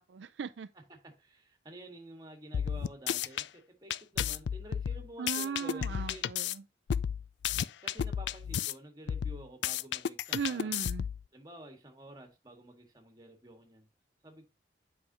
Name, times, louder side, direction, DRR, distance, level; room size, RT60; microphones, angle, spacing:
voice 1, 0.0-0.7 5.2-6.6 10.3-11.0, right 6 dB, 80° right, 0.4 m, -37 dB
voice 2, 0.7-6.3 7.8-10.8 11.3-13.9 14.2-14.4, right 1 dB, 20° right, 1.7 m, -50 dB
sound 1, 2.5-3.5 3.9-6.5 6.9-8.7 9.1-11.2, left 9 dB, 75° left, 0.3 m, -33 dB
8.3 x 5.0 x 2.9 m
head